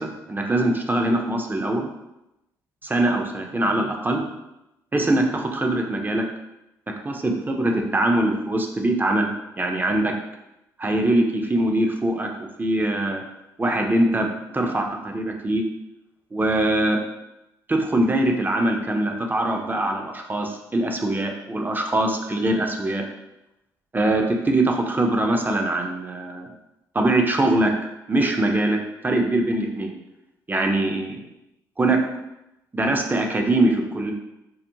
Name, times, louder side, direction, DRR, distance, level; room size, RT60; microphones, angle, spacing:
voice 1, 0.0-1.9 2.8-4.3 4.9-6.3 6.9-10.2 10.8-13.2 13.6-15.6 16.3-17.0 17.7-23.0 23.9-26.5 26.9-27.7 28.1-28.8 29.0-29.9 30.5-31.2 31.8-32.0 32.7-34.1, right 1 dB, 20° right, 2 dB, 0.4 m, -22 dB
2.3 x 2.1 x 2.9 m, 0.91 s
hypercardioid pair, 50°, 10 cm